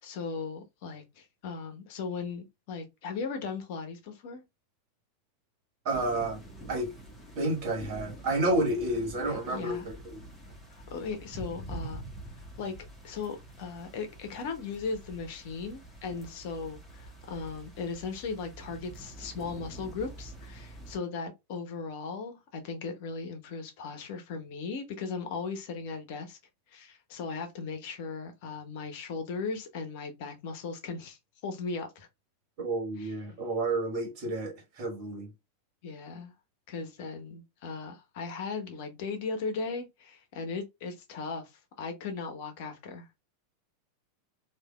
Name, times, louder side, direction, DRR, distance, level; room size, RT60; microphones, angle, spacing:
voice 1, 0.0-4.4 9.3-9.9 10.7-12.0 12.3-12.7 13.0-26.4 26.7-32.1 33.0-33.1 35.8-36.3 36.7-43.1, left 4 dB, 55° left, 0.8 m, -37 dB
voice 2, 5.8-6.4 6.7-6.9 7.3-10.2 32.6-35.3, right 2 dB, 50° right, 1.4 m, -30 dB
sound 1, 5.9-21.0, right 1 dB, 5° left, 1.4 m, -46 dB
3.4 x 2.5 x 2.3 m
figure-of-eight pair, 90°, 0 cm